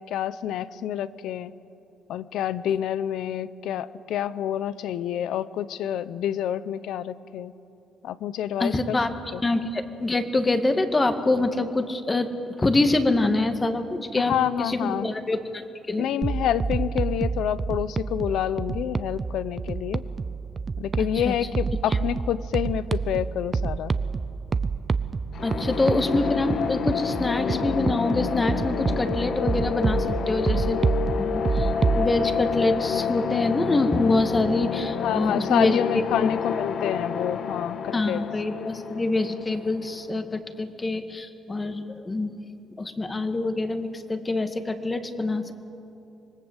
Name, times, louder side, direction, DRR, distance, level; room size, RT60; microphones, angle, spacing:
voice 1, 0.0-1.5 2.1-7.5 8.0-9.0 9.3-9.4 14.2-15.1 16.0-20.0 20.8-23.9 35.0-38.2, left 10 dB, 80° left, 16 dB, 0.7 m, -28 dB
voice 2, 8.6-9.1 9.4-16.1 21.2-21.3 25.4-30.8 31.2-31.7 32.0-35.8 36.2-36.3 37.9-42.3 42.8-45.5, left 2 dB, 25° left, 8 dB, 1.9 m, -25 dB
sound 1, 16.2-32.1, right 4 dB, 35° right, 0.7 m, -28 dB
sound 2, 25.3-40.0, left 6 dB, 65° left, 1.4 m, -29 dB
26.0 x 20.5 x 8.1 m, 2.9 s
cardioid pair, 90°, 0 cm